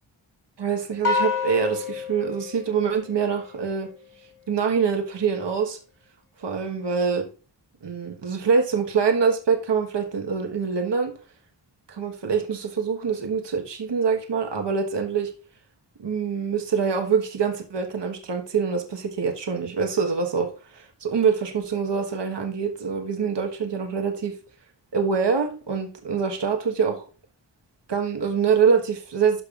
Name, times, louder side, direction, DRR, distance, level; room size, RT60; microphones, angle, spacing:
voice 1, 0.6-3.9 4.5-5.8 6.4-7.3 7.8-11.1 11.9-15.3 16.0-24.3 24.9-27.0 27.9-29.4, right 6 dB, 70° right, 3 dB, 1.3 m, -25 dB
sound 1, 1.0-3.6, left 5 dB, 50° left, 3.9 m, -28 dB
12.5 x 5.6 x 2.4 m, 0.36 s
wide cardioid pair, 75°, 43 cm